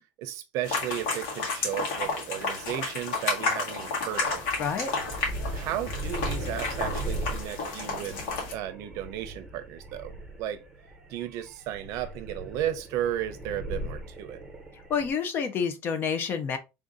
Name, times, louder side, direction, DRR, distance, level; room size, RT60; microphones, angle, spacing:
voice 1, 0.2-4.4 5.5-8.2 8.5-10.6 11.1-14.4, right 11 dB, 55° right, 0.6 m, -34 dB
sound 1, 0.6-8.5, left 3 dB, 85° left, 1.7 m, -31 dB
sound 2, 4.2-15.1, right 1 dB, 5° right, 0.8 m, -38 dB
voice 2, 4.6-4.9 14.9-16.6, left 6 dB, 35° left, 0.5 m, -28 dB
3.6 x 2.7 x 3.7 m
cardioid pair, 165°, 6 cm